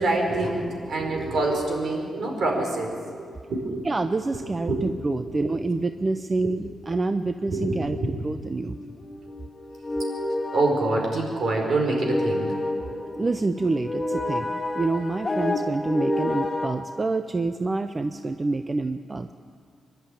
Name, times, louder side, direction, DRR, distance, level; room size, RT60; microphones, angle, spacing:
voice 1, 0.0-3.8 4.3-4.4 4.7-4.8 5.4-5.5 6.4-6.5 7.5-8.1 10.5-12.5, right 2 dB, 60° right, 1 dB, 4.8 m, -26 dB
voice 2, 3.8-8.8 13.1-19.3, right 3 dB, 25° right, 9 dB, 0.5 m, -27 dB
sound 1, 8.7-16.7, left 2 dB, 20° left, 2.2 m, -30 dB
24.5 x 11.5 x 9.0 m, 2.1 s
cardioid pair, 125°, 0 cm